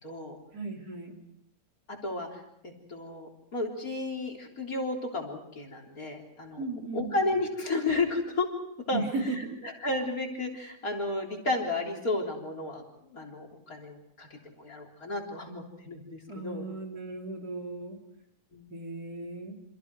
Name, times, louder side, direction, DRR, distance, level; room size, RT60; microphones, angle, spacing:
voice 1, 0.0-0.4 1.9-6.6 6.9-8.5 8.9-9.0 9.6-12.8 13.1-16.7 18.5-18.7, left 2 dB, 50° left, 1 dB, 4.1 m, -33 dB
voice 2, 0.5-1.2 6.6-7.1 8.9-9.5 16.3-18.0 18.7-19.6, right 3 dB, 55° right, 1 dB, 3.8 m, -35 dB
29.0 x 27.0 x 4.8 m, 0.75 s
omnidirectional pair, 1.9 m